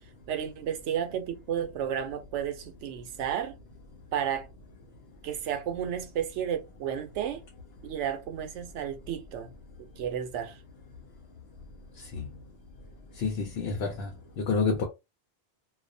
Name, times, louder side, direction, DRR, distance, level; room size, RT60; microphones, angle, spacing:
voice 1, 0.3-3.5 4.1-4.5 5.2-7.4 7.8-9.5 9.8-10.6, right 9 dB, 90° right, 0.9 m, -32 dB
voice 2, 13.2-14.1 14.4-14.9, left 4 dB, 65° left, 0.8 m, -28 dB
2.3 x 2.0 x 2.6 m
omnidirectional pair, 1.2 m